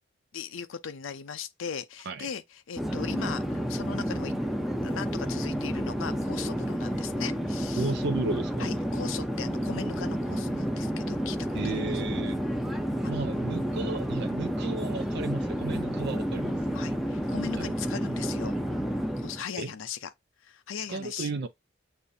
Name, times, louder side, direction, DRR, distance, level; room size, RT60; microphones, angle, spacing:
voice 1, 0.3-4.3 4.8-7.9 8.6-11.4 11.6-11.7 13.0-13.1 16.7-18.6 19.2-20.1 20.4-21.3, left 7 dB, 80° left, 0.5 m, -38 dB
Conversation / Chatter / Fixed-wing aircraft airplane, 2.8-19.4, equal, ahead, 0.5 m, -30 dB
voice 2, 7.8-8.7 11.5-12.4 13.1-16.5 17.5-17.7 19.6-19.7 20.9-21.5, right 3 dB, 60° right, 0.4 m, -33 dB
6.8 x 2.6 x 2.7 m
head